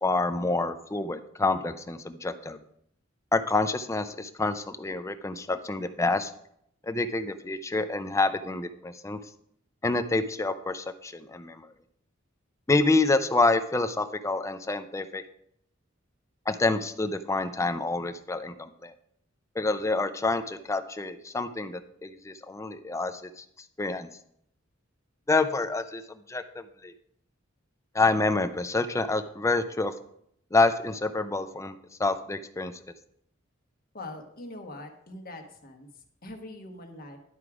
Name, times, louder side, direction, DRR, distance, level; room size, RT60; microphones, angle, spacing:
voice 1, 0.0-2.6 3.3-6.3 6.8-9.2 9.8-11.7 12.7-15.2 16.5-18.9 19.6-23.4 23.8-24.1 25.3-26.9 27.9-29.9 30.5-32.7, left 3 dB, 15° left, 10 dB, 0.5 m, -27 dB
voice 2, 33.9-35.9 36.2-37.2, left 2 dB, 50° left, 4 dB, 1.2 m, -42 dB
11.0 x 4.8 x 4.8 m, 0.71 s
head